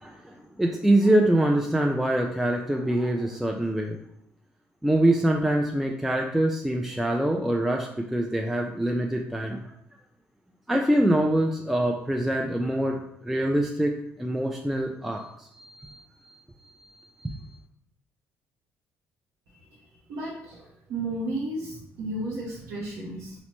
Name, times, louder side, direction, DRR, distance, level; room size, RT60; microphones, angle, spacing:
voice 1, 0.0-4.0 4.8-9.6 10.7-16.4 17.2-17.4, right 1 dB, 5° right, 1 dB, 0.3 m, -25 dB
voice 2, 20.1-20.6 20.9-23.3, right 1 dB, 70° right, -5 dB, 0.6 m, -33 dB
4.0 x 2.1 x 2.9 m, 0.75 s
supercardioid pair, 80°, 5 cm